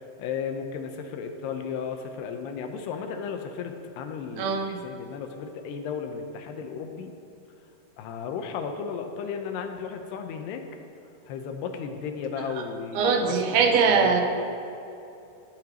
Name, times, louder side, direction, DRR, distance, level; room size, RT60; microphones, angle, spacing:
voice 1, 0.2-7.1 8.0-10.6 11.3-14.2, left 6 dB, 85° left, 5 dB, 2.9 m, -34 dB
voice 2, 4.4-4.8 13.0-14.2, right 5 dB, 80° right, 3 dB, 2.8 m, -22 dB
16.5 x 10.5 x 3.0 m, 2.8 s
omnidirectional pair, 4.6 m